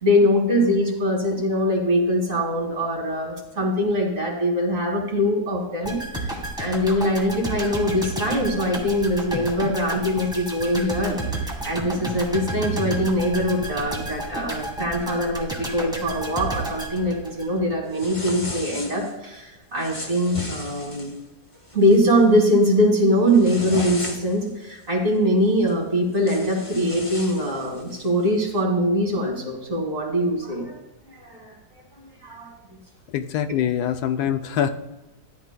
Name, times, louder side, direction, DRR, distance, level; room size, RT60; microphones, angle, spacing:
voice 1, 0.0-6.3 6.6-11.2 11.6-21.1 21.7-30.8 31.1-31.5 32.0-32.6, equal, 55° right, -1 dB, 2.9 m, -22 dB
sound 1, 5.8-17.9 18.2-18.3, right 1 dB, 5° right, 1.4 m, -31 dB
sound 2, 17.9-19.1 19.8-21.2 21.7-22.0 22.4-22.7 23.1-24.5 25.7-25.8 26.1-28.1, left 2 dB, 30° left, 0.7 m, -35 dB
voice 2, 33.1-34.7, left 9 dB, 80° left, 8 dB, 1.1 m, -24 dB
14.0 x 10.0 x 2.2 m, 1.0 s
omnidirectional pair, 1.7 m